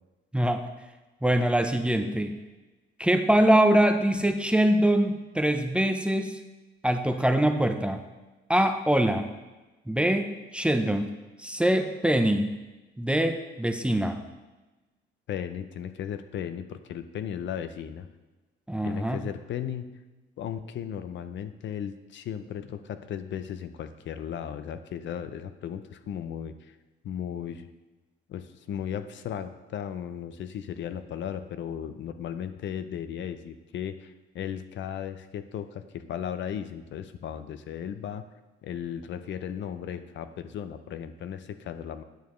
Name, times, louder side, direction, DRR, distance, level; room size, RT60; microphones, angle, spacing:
voice 1, 1.2-2.4 3.0-6.4 6.8-8.0 8.5-9.3 9.9-11.1 11.4-12.6 13.0-14.2 18.7-19.2, right 1 dB, 5° right, 7 dB, 0.6 m, -23 dB
voice 2, 15.3-18.1 18.8-19.9 20.4-26.7 27.0-27.7 28.3-38.2 38.6-42.0, left 9 dB, 70° left, 10 dB, 0.6 m, -36 dB
9.2 x 6.6 x 3.1 m, 1.1 s
cardioid pair, 90°, 20 cm